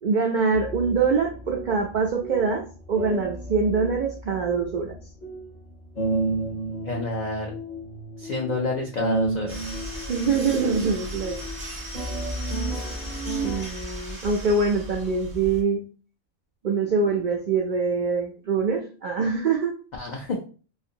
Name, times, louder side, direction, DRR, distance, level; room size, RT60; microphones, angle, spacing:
voice 1, 0.0-5.0 10.1-11.4 13.4-15.8 16.6-19.7, right 4 dB, 90° right, 0 dB, 0.4 m, -24 dB
sound 1, 0.5-13.6, right 2 dB, 45° left, 0.6 m, -32 dB
voice 2, 6.8-7.5 8.2-9.6 20.0-20.4, left 3 dB, 80° left, 0 dB, 0.4 m, -29 dB
sound 2, 9.5-15.6, equal, 30° right, 0.4 m, -37 dB
2.5 x 2.4 x 2.7 m, 0.38 s
omnidirectional pair, 1.4 m